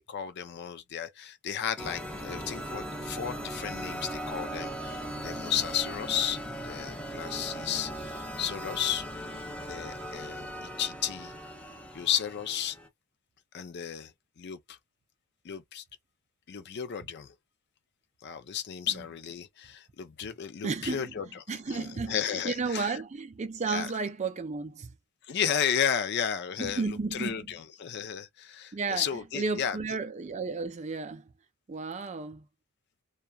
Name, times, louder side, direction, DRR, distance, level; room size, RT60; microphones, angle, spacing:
voice 1, 0.1-6.4 6.6-9.1 9.7-11.3 11.9-12.8 13.5-14.8 15.4-15.8 16.5-17.3 18.2-23.0 23.7-23.9 25.2-29.8, left 8 dB, 50° left, 0.4 m, -33 dB
sound 1, 1.8-12.9, equal, 5° left, 0.6 m, -38 dB
voice 2, 20.6-21.0 21.5-24.9 26.6-27.5 28.7-29.0 29.3-31.3 31.7-32.4, right 4 dB, 30° right, 0.4 m, -33 dB
2.8 x 2.2 x 2.3 m
head